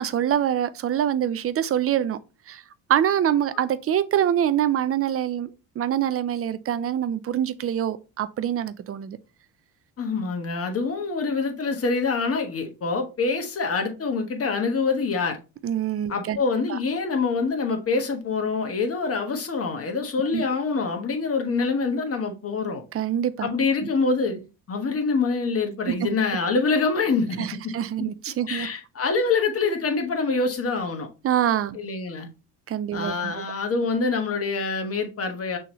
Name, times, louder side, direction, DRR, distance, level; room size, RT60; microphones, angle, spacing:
voice 1, 0.0-2.2 2.5-2.6 2.9-5.5 5.8-9.2 15.6-16.4 16.7-16.8 20.3-20.4 22.9-23.5 25.9-26.0 27.4-28.7 31.2-31.8 32.7-33.3, right 10 dB, 35° right, 0.4 m, -25 dB
voice 2, 10.0-15.4 16.1-22.8 23.4-24.4 24.7-27.7 28.5-31.1 31.7-32.3 32.9-35.6, left 4 dB, 35° left, 1.2 m, -25 dB
6.2 x 2.9 x 2.9 m
cardioid pair, 100°, 40 cm